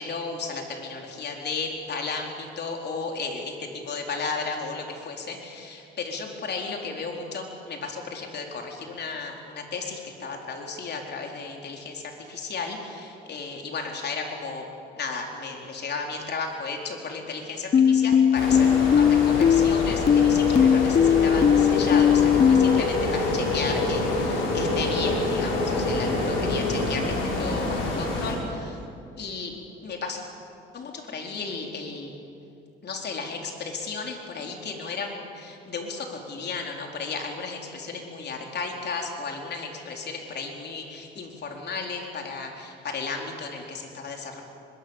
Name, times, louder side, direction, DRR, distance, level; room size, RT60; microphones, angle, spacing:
voice 1, 0.0-14.7 15.0-28.8 29.2-30.3 30.7-32.1 32.8-44.4, left 4 dB, 55° left, 2 dB, 4.2 m, -34 dB
sound 1, 17.7-22.8, left 8 dB, 35° left, 0.4 m, -19 dB
sound 2, 18.3-28.3, left 2 dB, 85° left, 6.1 m, -26 dB
24.0 x 21.5 x 7.3 m, 2.7 s
cardioid pair, 90°, 20 cm